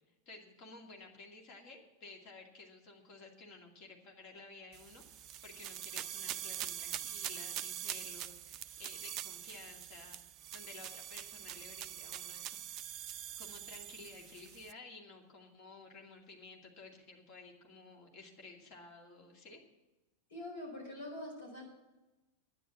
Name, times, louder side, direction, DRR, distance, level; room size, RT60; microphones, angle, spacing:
voice 1, 0.3-5.0 5.4-10.2 10.5-12.6 13.4-19.6, left 3 dB, 40° left, 1 dB, 2.4 m, -54 dB
sound 1, 4.7-14.7, right 11 dB, 35° right, 0.5 m, -44 dB
voice 2, 20.3-21.6, left 1 dB, 60° left, 0 dB, 5.5 m, -44 dB
11.0 x 9.8 x 7.2 m, 1.0 s
figure-of-eight pair, 90°, 0 cm